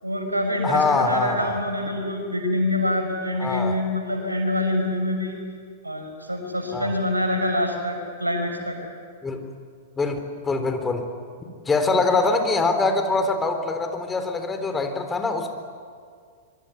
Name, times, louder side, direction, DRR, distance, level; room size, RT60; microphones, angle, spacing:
voice 1, 0.0-5.4 5.8-8.8, left 1 dB, 90° right, 3 dB, 6.4 m, -25 dB
voice 2, 0.6-1.6 3.4-3.7 6.7-6.9 9.2-9.4 10.0-10.2 10.4-11.1 11.7-15.5, left 3 dB, 15° left, 6 dB, 3.7 m, -23 dB
25.5 x 23.5 x 9.9 m, 2.1 s
figure-of-eight pair, 100°, 0 cm